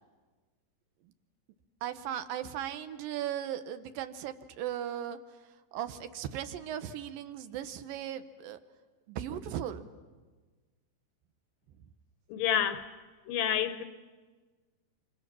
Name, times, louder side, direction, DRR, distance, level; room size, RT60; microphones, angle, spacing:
voice 1, 1.8-5.2 5.7-8.6 9.1-9.9, right 10 dB, 75° right, 2.5 m, -37 dB
voice 2, 12.3-12.9 13.3-13.8, left 9 dB, 75° left, 2.4 m, -29 dB
29.0 x 26.0 x 6.1 m
omnidirectional pair, 4.2 m